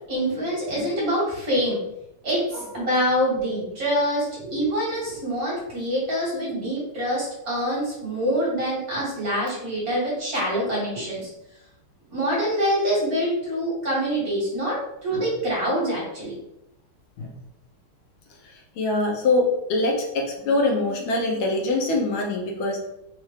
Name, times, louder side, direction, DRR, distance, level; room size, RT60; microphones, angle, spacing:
voice 1, 0.1-1.8 2.2-11.3 12.1-16.3, equal, 45° right, -6 dB, 1.7 m, -25 dB
voice 2, 18.4-22.8, left 2 dB, 80° left, 1 dB, 1.6 m, -24 dB
4.4 x 2.5 x 3.1 m, 0.83 s
omnidirectional pair, 2.3 m